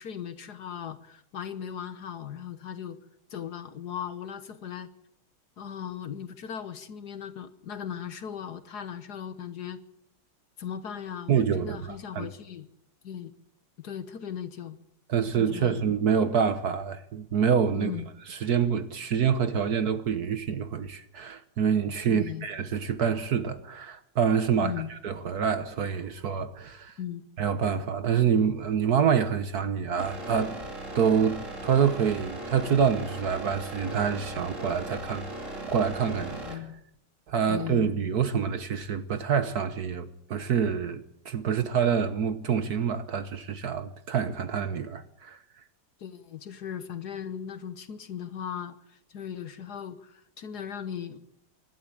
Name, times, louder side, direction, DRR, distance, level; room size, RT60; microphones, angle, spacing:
voice 1, 0.0-3.0 3.3-4.9 5.6-9.8 10.6-12.7 13.0-13.3 13.8-14.8 15.3-15.8 17.7-18.1 22.0-22.5 24.6-24.9 27.0-27.2 36.4-36.8 37.5-37.9 46.0-51.2, left 8 dB, 55° left, 1.4 m, -38 dB
voice 2, 11.3-12.3 15.1-17.9 18.3-26.9 27.4-30.6 30.9-35.2 35.7-36.6 37.3-45.4, right 7 dB, 55° right, 1.4 m, -26 dB
sound 1, 30.0-36.5, right 1 dB, 35° right, 3.2 m, -38 dB
25.5 x 12.0 x 8.7 m
omnidirectional pair, 2.3 m